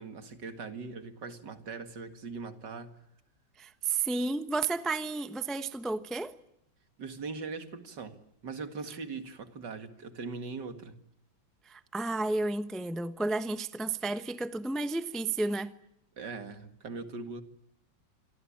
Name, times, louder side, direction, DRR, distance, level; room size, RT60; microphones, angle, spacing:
voice 1, 0.0-3.0 7.0-11.0 16.2-17.4, right 4 dB, 60° right, 2.6 m, -41 dB
voice 2, 3.6-6.3 11.7-15.7, right 3 dB, ahead, 0.6 m, -32 dB
27.0 x 23.5 x 8.8 m
omnidirectional pair, 2.1 m